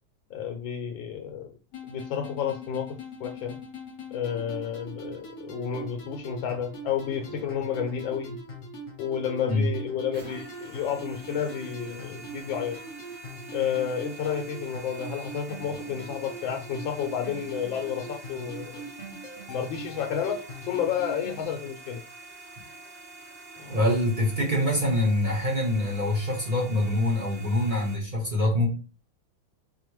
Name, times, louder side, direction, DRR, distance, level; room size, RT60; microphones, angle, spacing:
voice 1, 0.3-1.5 1.9-2.9 3.2-3.6 4.1-8.4 9.0-12.8 13.5-18.8 19.5-22.0 23.6-23.8, left 8 dB, 75° left, 5 dB, 1.3 m, -31 dB
sound 1, 1.7-21.4, right 1 dB, 50° left, 0.9 m, -42 dB
sound 2, 10.1-27.9, right 3 dB, 35° right, 1.1 m, -46 dB
voice 2, 23.7-28.7, left 1 dB, 55° right, -2 dB, 0.5 m, -25 dB
6.0 x 2.1 x 3.1 m, 0.35 s
omnidirectional pair, 2.2 m